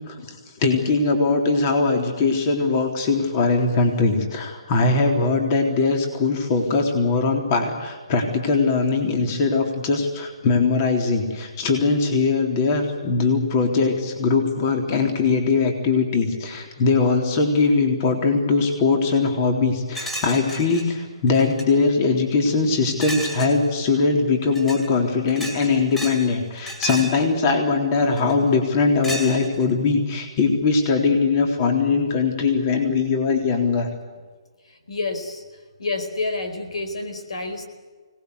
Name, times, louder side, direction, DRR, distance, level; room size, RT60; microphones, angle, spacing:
voice 1, 0.1-33.9, left 4 dB, 30° left, 3 dB, 3.8 m, -21 dB
sound 1, 19.9-20.8 21.3-21.7 23.0-23.6 24.5-24.9 25.3-26.3 26.5-27.2 28.2-28.5 29.0-29.7, right 1 dB, 10° left, 4.9 m, -32 dB
voice 2, 34.6-35.4 35.8-37.7, left 3 dB, 80° left, 8 dB, 4.6 m, -29 dB
25.5 x 19.5 x 8.2 m, 1.4 s
hypercardioid pair, 160°, 3 cm